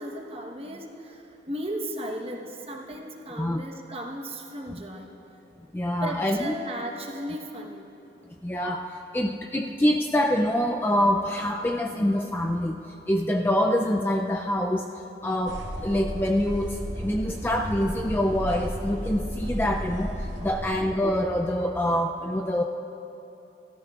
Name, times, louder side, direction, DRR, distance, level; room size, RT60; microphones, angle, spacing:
voice 1, 0.0-5.1 6.0-7.9 17.0-17.3 20.4-20.5, right 1 dB, 30° right, 1 dB, 1.1 m, -36 dB
voice 2, 5.7-6.5 8.4-12.8 13.1-14.9 15.2-22.6, left 1 dB, 10° left, 2 dB, 0.3 m, -25 dB
sound 1, 15.5-20.8, equal, 90° right, 2.0 m, -34 dB
27.5 x 14.0 x 2.4 m, 2.9 s
head